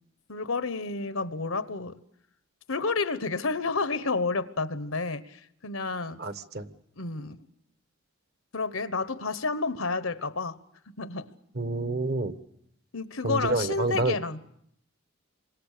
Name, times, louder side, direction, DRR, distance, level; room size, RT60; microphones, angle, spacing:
voice 1, 0.3-2.0 2.7-6.2 7.0-7.4 8.5-10.6 11.0-11.3 12.9-14.4, left 3 dB, 75° left, 1.1 m, -30 dB
voice 2, 6.2-6.7 11.5-12.3 13.2-14.1, right 2 dB, 50° right, 1.2 m, -28 dB
27.5 x 25.0 x 6.7 m
head